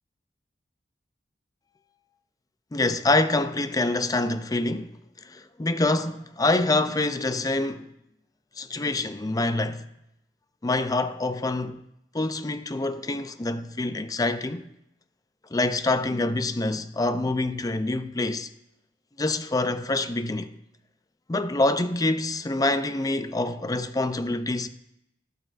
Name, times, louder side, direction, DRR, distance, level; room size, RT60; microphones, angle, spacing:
voice 1, 2.7-4.9 5.3-7.9 8.6-9.8 10.6-11.8 12.1-14.7 15.5-18.5 19.2-20.5 21.3-24.7, left 2 dB, 20° left, 0.5 m, -26 dB
12.0 x 12.0 x 2.5 m
head